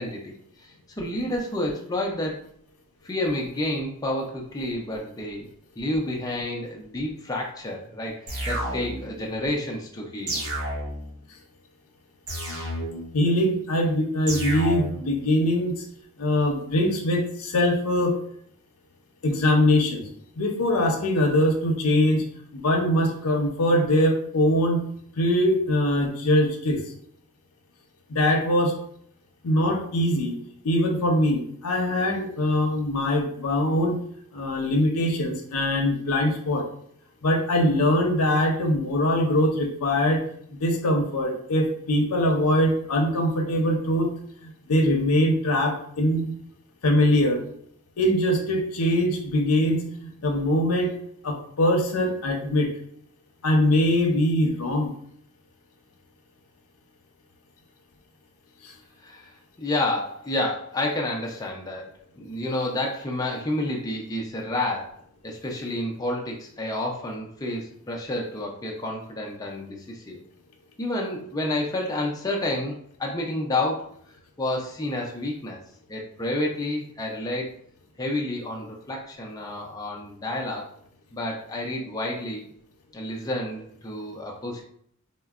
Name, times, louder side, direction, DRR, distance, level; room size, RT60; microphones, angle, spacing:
voice 1, 0.0-2.4 3.0-5.5 5.8-10.4 59.0-59.3 59.6-61.9 62.2-64.9 65.2-70.2 70.8-73.9 74.4-75.6 75.9-77.5 78.0-80.7 81.1-82.5 82.9-84.6, left 1 dB, 15° left, -1 dB, 0.4 m, -30 dB
sound 1, 8.3-9.2 10.3-11.2 12.3-13.2 14.3-15.1, right 1 dB, 90° right, 1.0 m, -30 dB
voice 2, 13.1-15.8 16.2-18.2 19.2-20.0 20.4-22.2 22.5-24.8 25.2-26.8 28.1-28.7 29.4-30.4 30.6-34.0 34.3-36.6 37.2-40.2 40.6-44.1 44.4-46.3 46.8-47.4 48.0-50.9 51.2-52.7 53.4-54.9 58.6-58.7, left 1 dB, 85° left, 3 dB, 0.6 m, -22 dB
3.6 x 2.0 x 2.3 m, 0.64 s
head